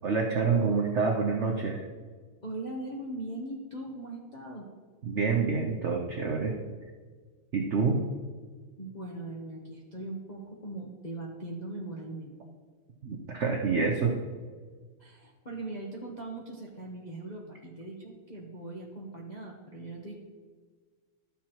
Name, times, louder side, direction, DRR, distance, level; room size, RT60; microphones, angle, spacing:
voice 1, 0.0-1.8 5.0-6.6 7.5-8.0 13.0-14.2, right 5 dB, 85° right, 1 dB, 0.6 m, -27 dB
voice 2, 2.4-4.7 8.8-12.4 15.0-20.1, right 2 dB, 50° left, -3 dB, 0.5 m, -40 dB
12.5 x 7.0 x 3.0 m, 1.5 s
omnidirectional pair, 2.3 m